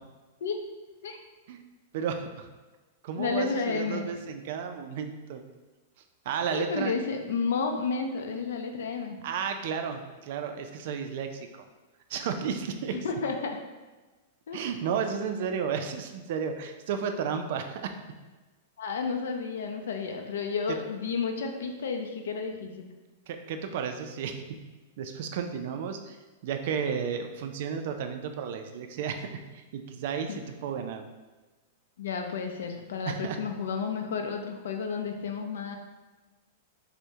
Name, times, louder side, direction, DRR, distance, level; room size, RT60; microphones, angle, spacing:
voice 1, 1.9-2.5 3.0-5.4 6.3-6.9 9.2-11.7 12.1-13.0 14.5-17.9 20.7-20.8 23.3-24.4 25.0-26.2 26.4-29.3 29.7-31.0 33.1-33.4, right 7 dB, 55° right, 6 dB, 0.3 m, -33 dB
voice 2, 3.2-4.1 6.5-9.2 12.9-13.6 14.5-14.6 18.8-22.9 30.3-30.4 32.0-35.8, left 5 dB, 90° left, 5 dB, 0.4 m, -31 dB
4.5 x 2.1 x 2.7 m, 1.2 s
supercardioid pair, 165°, 0 cm